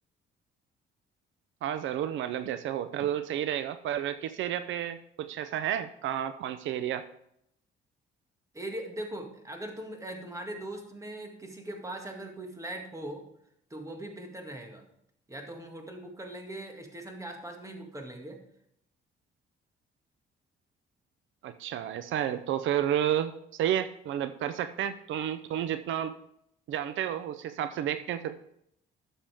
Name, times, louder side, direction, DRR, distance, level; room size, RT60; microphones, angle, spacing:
voice 1, 1.6-7.0 21.4-26.1 26.7-28.4, right 10 dB, 75° right, 12 dB, 0.6 m, -31 dB
voice 2, 8.5-13.2 13.7-14.8 15.3-18.4, right 1 dB, 15° right, 3 dB, 2.0 m, -40 dB
12.0 x 7.1 x 3.5 m, 0.74 s
cardioid pair, 90°, 20 cm